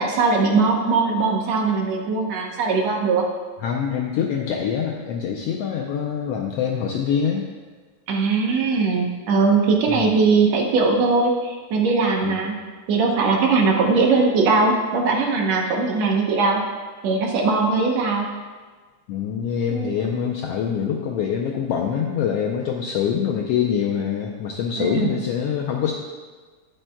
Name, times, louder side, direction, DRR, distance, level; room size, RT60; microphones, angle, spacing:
voice 1, 0.0-3.2 8.1-12.5 12.9-16.6 17.0-18.3 19.7-20.0 24.8-25.1, right 4 dB, 70° right, 1 dB, 2.0 m, -20 dB
voice 2, 3.6-7.4 9.9-10.1 12.2-12.4 19.1-25.9, left 8 dB, 80° left, 0 dB, 1.4 m, -25 dB
10.5 x 9.0 x 2.2 m, 1.4 s
omnidirectional pair, 3.4 m